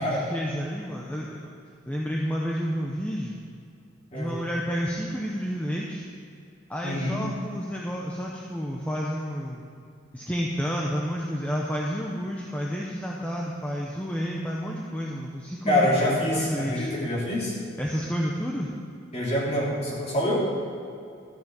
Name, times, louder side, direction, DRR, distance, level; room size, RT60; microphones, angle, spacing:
voice 1, 0.0-1.4 1.9-3.4 4.1-6.1 6.7-9.6 10.1-15.9 16.3-16.9 17.8-18.7, equal, 5° left, -3 dB, 0.8 m, -30 dB
voice 2, 6.8-7.2 15.6-17.5 19.1-20.4, left 1 dB, 30° left, -6 dB, 3.1 m, -25 dB
13.0 x 6.3 x 7.5 m, 2.5 s
head